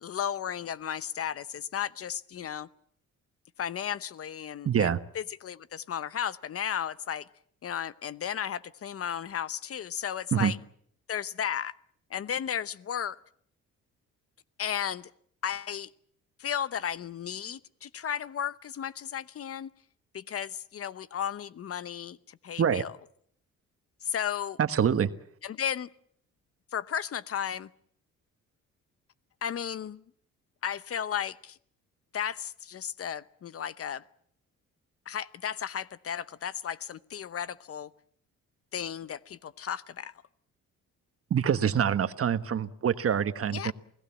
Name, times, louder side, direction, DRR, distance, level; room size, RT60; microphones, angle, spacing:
voice 1, 0.0-2.7 3.6-7.3 7.6-10.6 11.1-11.7 12.1-13.2 14.6-15.1 15.4-15.9 16.4-19.7 20.1-22.9 24.0-24.6 25.4-25.9 26.7-27.7 29.4-30.0 30.6-31.6 32.1-34.0 35.1-37.9 38.7-40.2 43.5-43.7, left 9 dB, 50° left, 17 dB, 0.9 m, -34 dB
voice 2, 4.6-5.0 10.3-10.5 22.6-22.8 24.6-25.1 41.3-43.7, right 8 dB, 50° right, 11 dB, 1.4 m, -25 dB
28.5 x 18.5 x 7.3 m, 0.66 s
cardioid pair, 90°, 30 cm